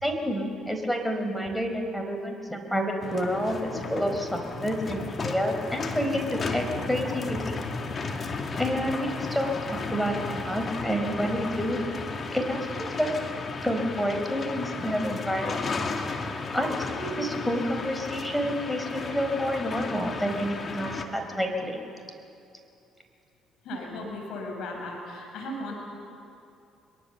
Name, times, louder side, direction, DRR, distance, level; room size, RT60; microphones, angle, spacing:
voice 1, 0.0-7.6 8.6-11.9 12.3-13.1 13.6-15.8 16.5-21.8, equal, 5° left, 4 dB, 4.6 m, -29 dB
sound 1, 3.0-21.0, left 4 dB, 40° left, 2.4 m, -34 dB
voice 2, 23.6-25.7, left 1 dB, 65° left, 0 dB, 6.0 m, -36 dB
23.0 x 22.5 x 7.1 m, 2.6 s
hypercardioid pair, 50°, 0 cm